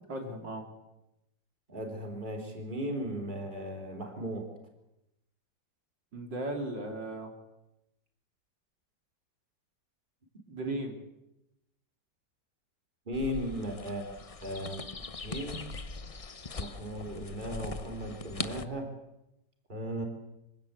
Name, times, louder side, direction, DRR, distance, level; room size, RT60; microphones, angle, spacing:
voice 1, 0.1-0.6 6.1-7.3 10.5-10.9, right 1 dB, 70° right, 3 dB, 4.0 m, -36 dB
voice 2, 1.7-4.5 10.6-10.8 13.1-14.1 14.4-14.9 15.2-15.6 16.6-18.9 19.7-20.0, equal, 25° right, 3 dB, 3.7 m, -36 dB
sound 1, 13.1-18.6, left 4 dB, 45° left, 0.4 m, -41 dB
25.0 x 16.5 x 8.2 m, 0.89 s
omnidirectional pair, 2.0 m